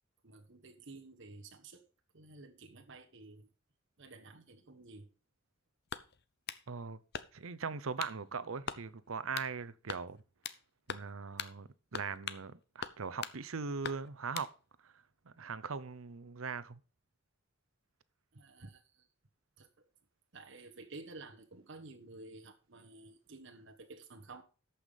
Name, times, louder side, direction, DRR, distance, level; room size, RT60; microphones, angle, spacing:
voice 1, 0.2-1.9 2.1-3.5 4.0-5.1 18.3-19.1 19.6-19.7 20.3-24.4, right 3 dB, 60° right, 1.3 m, -52 dB
sound 1, 5.9-6.6 7.1-7.5 8.0-8.2 8.7-8.8 9.3-9.5 9.9-10.6 10.9-11.1 11.4-11.5 11.9-12.5 12.8-13.4 13.8-14.5, left 7 dB, 55° left, 0.7 m, -42 dB
voice 2, 6.7-7.0 7.3-10.2 10.9-14.5 14.8-14.9 15.4-16.8, right 5 dB, 85° right, 0.8 m, -40 dB
13.5 x 5.8 x 5.1 m
head